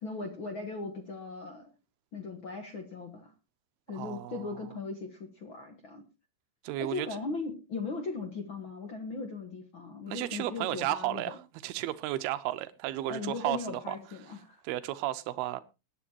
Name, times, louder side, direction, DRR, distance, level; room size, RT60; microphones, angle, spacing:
voice 1, 0.0-1.7 2.1-3.3 3.9-6.0 6.8-11.4 13.1-14.6, left 4 dB, 65° left, 1.2 m, -38 dB
voice 2, 3.9-4.4 6.6-7.1 10.1-14.0 14.6-15.6, right 15 dB, 80° right, 2.7 m, -33 dB
21.0 x 9.8 x 2.9 m
omnidirectional pair, 4.6 m